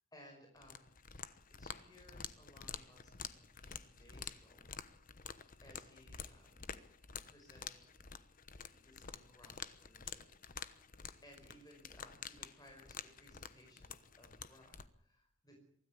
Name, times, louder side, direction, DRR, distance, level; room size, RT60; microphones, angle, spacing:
voice 1, 0.1-0.9 1.6-4.7 5.6-6.6 7.2-7.8 8.7-10.3 11.2-15.5, left 1 dB, 20° left, 2 dB, 5.4 m, -62 dB
sound 1, 0.6-14.9, left 7 dB, 40° left, 1.1 m, -50 dB
24.5 x 13.5 x 8.6 m, 0.72 s
head